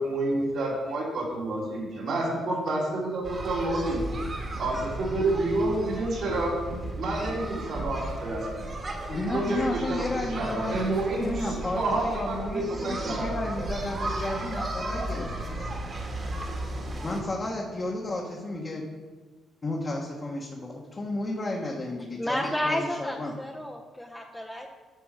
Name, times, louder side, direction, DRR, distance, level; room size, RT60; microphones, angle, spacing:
voice 1, 0.0-4.0 4.6-6.6 7.0-8.8 9.3-13.4, right 2 dB, 70° right, -4 dB, 2.9 m, -29 dB
sound 1, 3.2-17.2, right 1 dB, 40° right, 1.8 m, -35 dB
voice 2, 9.1-10.8 11.2-15.7 17.0-18.8 19.6-23.4, left 2 dB, 30° left, -3 dB, 1.3 m, -32 dB
voice 3, 22.2-24.7, left 1 dB, 5° left, -1 dB, 0.8 m, -31 dB
10.0 x 5.3 x 4.8 m, 1.4 s
cardioid pair, 90°, 0 cm